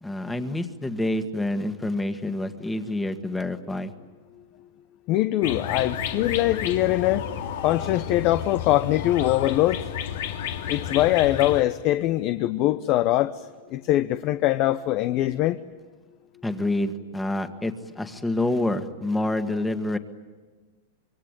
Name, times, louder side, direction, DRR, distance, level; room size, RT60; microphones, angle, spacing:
voice 1, 0.0-3.9 16.4-20.0, left 1 dB, 10° left, 8 dB, 1.8 m, -27 dB
voice 2, 5.1-7.2 7.6-9.8 10.7-13.3 13.7-15.6, left 15 dB, 45° left, 11 dB, 0.8 m, -22 dB
sound 1, 5.4-11.6, left 8 dB, 75° left, 2.4 m, -32 dB
26.0 x 23.0 x 9.1 m, 1.3 s
hypercardioid pair, 125°, 0 cm